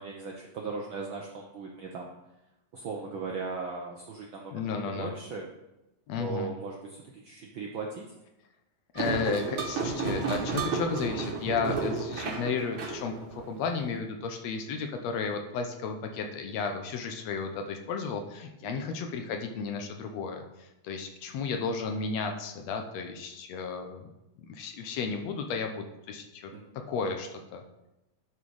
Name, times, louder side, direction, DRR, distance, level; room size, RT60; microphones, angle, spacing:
voice 1, 0.0-2.1 2.7-5.5 6.2-8.1 18.6-18.9 26.5-26.7, right 4 dB, 70° right, 0 dB, 1.2 m, -38 dB
voice 2, 4.5-5.1 6.1-6.5 8.9-24.1 24.5-26.5 26.9-27.6, left 5 dB, 75° left, 5 dB, 1.8 m, -33 dB
sound 1, 9.0-13.8, right 4 dB, 55° right, 1.8 m, -32 dB
11.0 x 4.5 x 4.7 m, 0.94 s
omnidirectional pair, 3.3 m